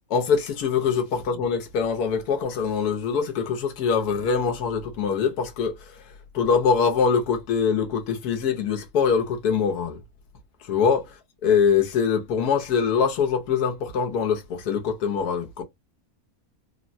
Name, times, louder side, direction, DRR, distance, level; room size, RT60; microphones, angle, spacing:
voice 1, 0.1-5.9 6.3-10.0 10.7-11.1 11.4-15.6, left 6 dB, 90° left, 1.4 m, -23 dB
3.5 x 2.1 x 2.6 m
omnidirectional pair, 1.6 m